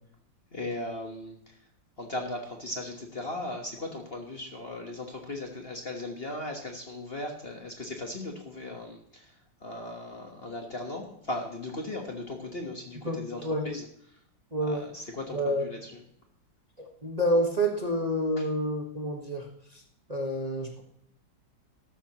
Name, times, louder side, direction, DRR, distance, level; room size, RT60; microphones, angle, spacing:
voice 1, 0.5-1.6 2.0-14.2 14.6-15.9 18.4-18.5, left 2 dB, 35° left, 2 dB, 1.4 m, -38 dB
voice 2, 13.0-13.6 14.5-14.8 15.3-15.6 16.8-19.5 19.7-19.8 20.1-20.8, equal, 20° right, 1 dB, 1.5 m, -28 dB
14.0 x 12.5 x 3.0 m, 0.69 s
omnidirectional pair, 2.0 m